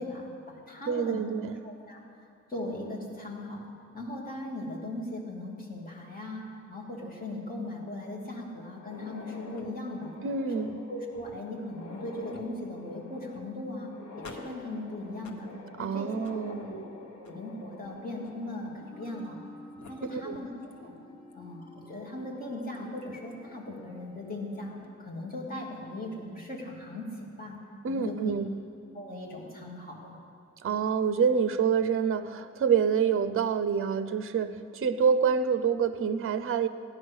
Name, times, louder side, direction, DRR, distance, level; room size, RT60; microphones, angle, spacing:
voice 1, 0.0-1.2 1.6-2.0 2.5-3.6 3.9-10.1 10.5-13.9 14.2-15.5 15.8-16.3 16.6-16.7 17.2-19.4 19.9-21.0 21.3-24.7 25.0-27.6 27.9-28.3 28.9-30.2, left 1 dB, 30° left, -3 dB, 2.8 m, -38 dB
voice 2, 0.9-1.6 10.2-10.8 15.8-16.7 20.2-20.4 27.8-28.4 30.6-36.7, right 6 dB, 45° right, 11 dB, 0.6 m, -27 dB
sound 1, 8.7-19.5 19.8-19.9 20.7-20.8 21.3-21.4 22.7-23.0, left 3 dB, 70° left, 1.3 m, -47 dB
sound 2, 17.8-24.9, left 2 dB, 15° right, 1.8 m, -52 dB
16.5 x 10.5 x 6.3 m, 2.5 s
wide cardioid pair, 135°, 29 cm